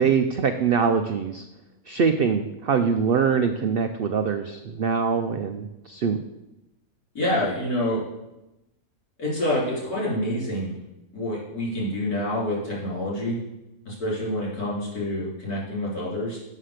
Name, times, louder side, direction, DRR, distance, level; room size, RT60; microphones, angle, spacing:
voice 1, 0.0-1.4 1.9-6.2, right 6 dB, 85° right, 7 dB, 0.5 m, -23 dB
voice 2, 7.1-8.0 9.2-10.7 11.1-13.4 13.9-16.4, left 1 dB, 75° left, -6 dB, 4.2 m, -27 dB
7.5 x 5.8 x 6.5 m, 0.93 s
omnidirectional pair, 1.6 m